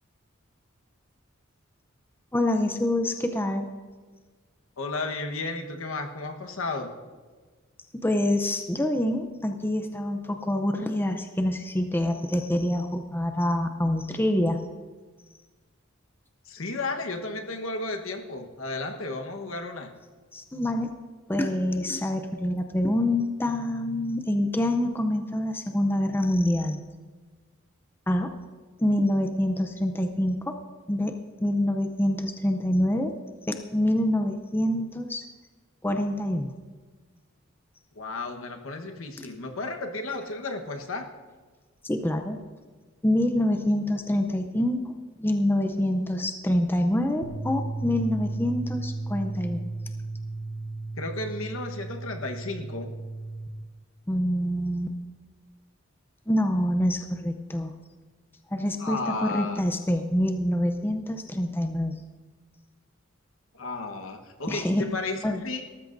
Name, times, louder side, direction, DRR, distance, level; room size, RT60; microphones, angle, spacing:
voice 1, 2.3-3.7 8.0-14.6 20.3-20.9 21.3-26.8 28.1-28.3 28.8-30.6 30.9-33.1 33.5-35.2 35.8-36.5 39.2-39.3 41.8-42.4 43.0-44.8 45.2-49.6 54.1-55.0 56.3-57.7 58.5-62.0 64.5-64.9 65.2-65.4, left 1 dB, 10° left, 6 dB, 0.6 m, -26 dB
voice 2, 4.8-6.9 16.5-19.9 37.9-41.1 51.0-52.9 58.8-59.6 63.5-65.6, left 3 dB, 75° left, 4 dB, 1.3 m, -33 dB
sound 1, 47.2-53.5, right 2 dB, 40° right, 1.1 m, -34 dB
18.5 x 13.5 x 2.6 m, 1.4 s
head